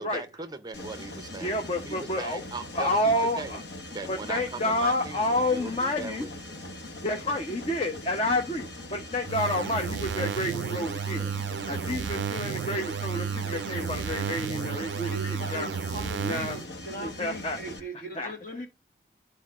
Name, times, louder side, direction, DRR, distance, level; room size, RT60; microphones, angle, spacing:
voice 1, 0.0-3.6 3.9-6.5, right 3 dB, 20° right, 0.5 m, -39 dB
Mechanisms, 0.7-17.8, left 1 dB, 75° left, 1.0 m, -41 dB
voice 2, 1.4-2.4 2.7-3.6 4.1-6.3 7.0-11.3 11.7-15.7 16.2-16.6 17.0-17.6 18.1-18.3, left 1 dB, 35° left, 0.8 m, -29 dB
sound 1, 9.3-16.7, right 7 dB, 85° right, 0.3 m, -32 dB
voice 3, 15.1-18.7, equal, 50° left, 1.6 m, -39 dB
11.5 x 4.2 x 2.4 m
head